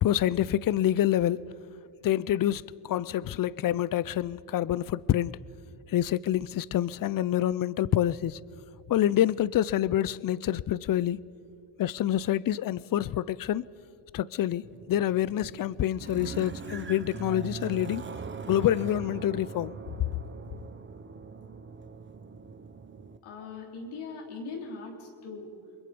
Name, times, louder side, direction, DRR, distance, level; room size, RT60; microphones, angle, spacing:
voice 1, 0.0-1.4 2.0-5.4 5.9-8.4 8.9-11.2 11.8-13.6 14.1-18.0 18.5-19.7, left 12 dB, 45° left, 0.5 m, -27 dB
sound 1, 14.6-23.2, right 5 dB, 25° right, 1.0 m, -41 dB
voice 2, 23.2-25.5, left 4 dB, 90° left, 4.0 m, -40 dB
28.5 x 23.0 x 5.3 m
cardioid pair, 95°, 49 cm